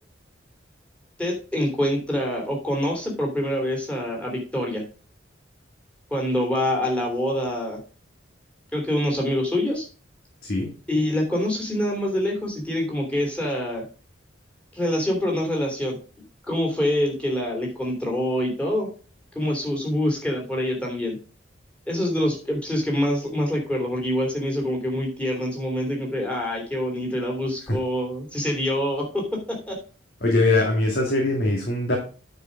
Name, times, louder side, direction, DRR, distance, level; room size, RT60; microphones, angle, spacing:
voice 1, 1.2-4.8 6.1-7.8 8.7-9.8 10.9-13.8 14.7-16.0 16.5-18.9 19.3-21.2 21.9-29.8, left 1 dB, 5° left, -1 dB, 3.0 m, -25 dB
voice 2, 30.2-32.0, left 2 dB, 55° left, -1 dB, 2.0 m, -21 dB
9.5 x 4.8 x 5.2 m, 0.37 s
head